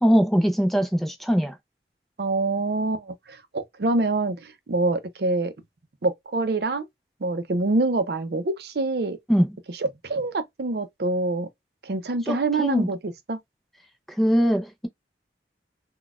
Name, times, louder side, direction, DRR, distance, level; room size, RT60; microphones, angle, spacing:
voice 1, 0.0-1.6 9.3-9.5 12.3-12.9 14.2-14.9, equal, ahead, 0.5 m, -21 dB
voice 2, 2.2-5.5 6.0-6.9 7.2-9.2 9.8-11.5 11.8-13.4, right 2 dB, 65° right, 0.5 m, -26 dB
4.0 x 2.2 x 2.3 m
head